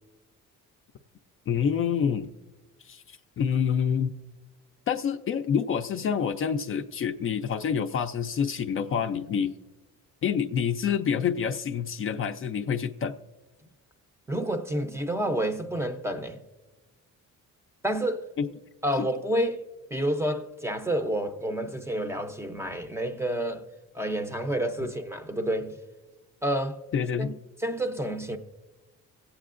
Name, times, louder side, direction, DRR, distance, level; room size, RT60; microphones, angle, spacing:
voice 1, 1.5-2.3 2.8-4.1 4.9-9.5 10.2-13.1 18.4-18.5 19.0-19.1 26.9-27.3, left 7 dB, 40° left, 0.4 m, -27 dB
voice 2, 14.3-16.4 17.8-18.3 18.8-19.6 19.9-23.6 23.9-25.8 26.4-26.8 27.2-27.3 27.6-28.4, right 1 dB, 10° right, 0.5 m, -29 dB
25.0 x 8.4 x 2.5 m
cardioid pair, 145°, 32 cm